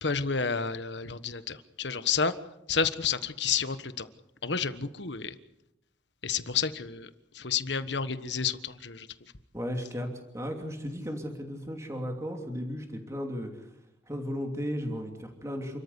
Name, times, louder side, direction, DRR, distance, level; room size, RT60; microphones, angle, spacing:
voice 1, 0.0-2.3 2.7-4.1 4.4-5.3 6.2-7.1 7.3-9.1, left 6 dB, 70° left, 12 dB, 1.4 m, -30 dB
voice 2, 9.5-10.1 10.3-13.6 14.1-15.8, equal, 15° right, 3 dB, 2.9 m, -35 dB
29.5 x 14.0 x 8.3 m, 0.86 s
head